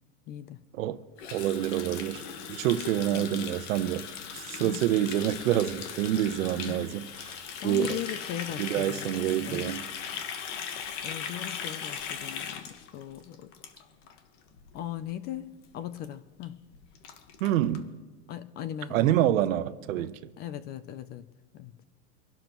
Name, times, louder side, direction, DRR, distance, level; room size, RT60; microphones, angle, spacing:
voice 1, 0.3-0.6 3.1-3.5 4.5-5.0 6.7-7.0 7.6-9.1 9.4-9.7 11.0-13.5 14.7-16.6 18.3-19.6 19.9-20.1 20.4-21.3 21.5-21.7, left 11 dB, 25° left, 0.4 m, -39 dB
Water tap faucet, 1.2-14.2 14.5-14.7 15.0-15.4 15.6-15.7 16.0-16.1 16.4-16.5 16.7-17.8, left 7 dB, 65° left, 1.5 m, -39 dB
voice 2, 1.3-2.2 2.5-4.1 4.3-7.3 7.6-8.0 8.6-9.9 17.4-17.9 18.9-20.2, right 12 dB, 80° right, 1.0 m, -27 dB
25.5 x 12.0 x 3.0 m
supercardioid pair, 150°, 39 cm